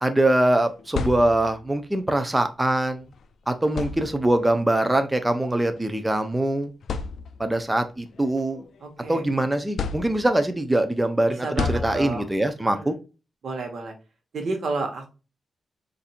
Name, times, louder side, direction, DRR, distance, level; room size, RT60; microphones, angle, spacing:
voice 1, 0.0-3.0 3.5-6.7 7.4-8.6 9.1-12.9, right 1 dB, 10° right, 0.5 m, -23 dB
sound 1, 0.6-1.8 3.0-3.2 3.7-4.5 5.6-5.8 6.3-6.4 6.8-7.6 8.1-9.2 9.8-10.6 11.6-12.5, left 5 dB, 70° left, 0.3 m, -32 dB
voice 2, 8.8-9.2 11.4-12.3 12.7-12.9 13.4-13.9 14.3-15.1, right 3 dB, 60° right, 1.0 m, -30 dB
4.2 x 2.6 x 2.5 m
cardioid pair, 110°, 0 cm